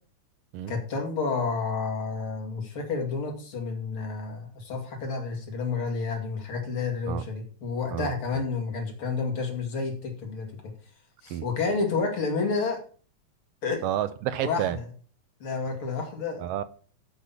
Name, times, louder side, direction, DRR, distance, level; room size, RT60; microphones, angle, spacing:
voice 1, 0.7-10.7 11.2-12.8 13.6-13.8 14.4-14.9 15.4-16.5, left 4 dB, 45° left, 3.0 m, -30 dB
voice 2, 13.8-14.8 16.4-16.6, right 11 dB, 80° right, 1.5 m, -29 dB
8.2 x 6.2 x 7.1 m
omnidirectional pair, 3.3 m